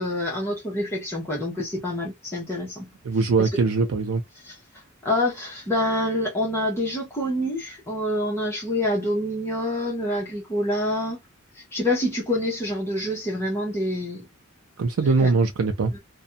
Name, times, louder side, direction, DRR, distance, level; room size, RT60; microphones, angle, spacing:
voice 1, 0.0-2.9 3.4-3.5 4.4-4.6 5.0-11.2 11.5-14.3 15.0-15.3 15.9-16.0, left 1 dB, 10° left, 0.8 m, -27 dB
voice 2, 3.0-4.2 14.8-15.9, right 4 dB, 75° right, 0.4 m, -21 dB
2.5 x 2.2 x 2.6 m
head